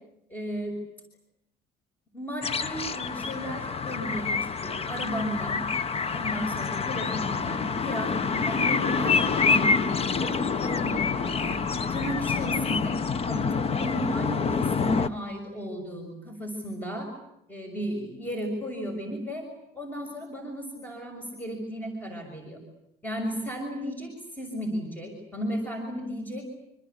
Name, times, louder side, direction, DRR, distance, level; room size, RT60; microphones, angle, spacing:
voice 1, 0.3-0.8 2.1-5.7 6.1-9.9 10.2-11.5 11.9-12.9 13.3-17.1 17.5-19.5 19.7-22.6 23.0-26.4, equal, 10° left, 4 dB, 6.5 m, -34 dB
sound 1, 2.4-15.1, left 5 dB, 35° left, 1.2 m, -27 dB
26.5 x 25.5 x 8.5 m, 0.77 s
cardioid pair, 110°, 17 cm